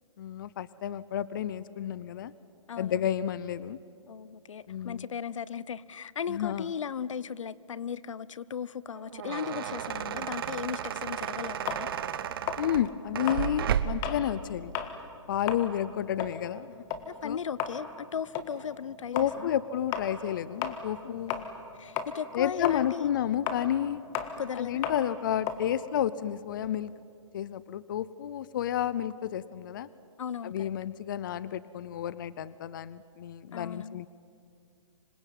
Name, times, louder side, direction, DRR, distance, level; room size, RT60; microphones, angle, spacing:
voice 1, 0.2-2.3 2.8-3.8 4.7-5.1 6.3-6.7 12.6-14.7 15.3-16.7 17.2-17.4 19.1-21.3 22.3-24.0 24.6-26.9 27.3-29.9 30.4-34.1, left 10 dB, 40° left, 18 dB, 0.6 m, -31 dB
voice 2, 2.7-3.1 4.1-11.9 17.1-19.5 21.0-21.5 21.8-23.1 24.4-24.8 30.2-30.7 33.5-34.1, left 7 dB, 75° left, 20 dB, 0.8 m, -37 dB
sound 1, 8.9-14.2, right 9 dB, 45° right, 1.1 m, -33 dB
sound 2, 11.7-14.3 14.6-15.0 15.3-21.7 22.0-26.7, left 8 dB, 20° left, 1.5 m, -36 dB
26.0 x 21.0 x 9.2 m, 2.4 s
hypercardioid pair, 160°, 16 cm